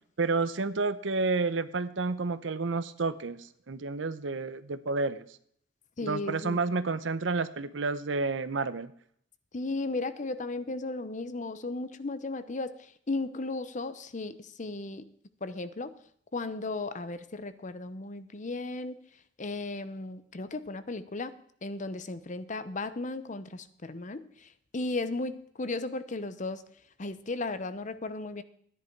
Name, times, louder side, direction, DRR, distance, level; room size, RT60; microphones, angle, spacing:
voice 1, 0.2-5.2 6.0-8.9, right 3 dB, 85° right, 14 dB, 0.8 m, -30 dB
voice 2, 6.0-6.6 9.5-15.1 15.4-15.9 16.3-19.0 19.4-21.4 21.6-26.6 27.0-28.4, left 2 dB, 40° left, 13 dB, 0.8 m, -35 dB
13.5 x 10.0 x 4.6 m, 0.65 s
head